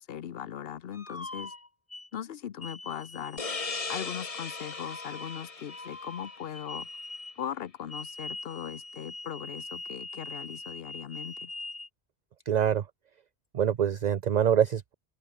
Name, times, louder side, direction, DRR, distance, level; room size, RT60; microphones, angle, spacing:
voice 1, 0.0-1.5 2.1-3.4 3.9-6.9 7.4-11.5, left 9 dB, 65° left, 1.0 m, -39 dB
sound 1, 0.9-2.1 2.6-7.4 7.9-11.9, left 2 dB, 15° left, 0.7 m, -42 dB
sound 2, 3.4-6.8, left 4 dB, 35° left, 1.2 m, -38 dB
voice 2, 12.5-12.8 13.5-14.9, right 9 dB, 50° right, 0.6 m, -25 dB
open air
omnidirectional pair, 1.1 m